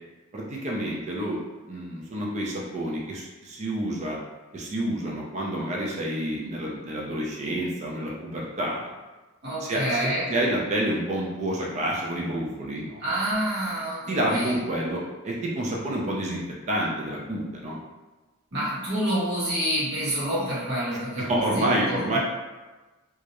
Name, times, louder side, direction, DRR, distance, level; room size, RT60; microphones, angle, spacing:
voice 1, 0.3-1.4 1.7-4.2 4.5-8.9 9.6-10.0 10.3-13.0 14.1-16.4 16.7-17.8 20.9-22.2, right 1 dB, 30° right, -3 dB, 0.4 m, -28 dB
voice 2, 9.4-10.3 13.0-14.5 18.5-22.2, equal, 50° right, -9 dB, 1.0 m, -28 dB
2.3 x 2.0 x 2.8 m, 1.2 s
head